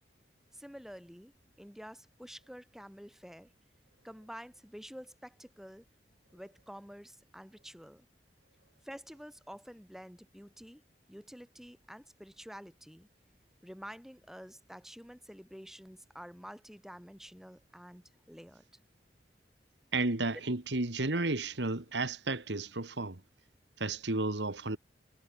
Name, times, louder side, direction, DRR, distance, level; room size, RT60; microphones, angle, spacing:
voice 1, 0.5-1.3 1.6-3.5 4.0-5.9 6.3-8.1 8.8-10.8 11.1-13.1 13.6-18.6, equal, ahead, 5.4 m, -49 dB
voice 2, 19.9-23.2 23.8-24.8, right 2 dB, 90° right, 2.0 m, -32 dB
head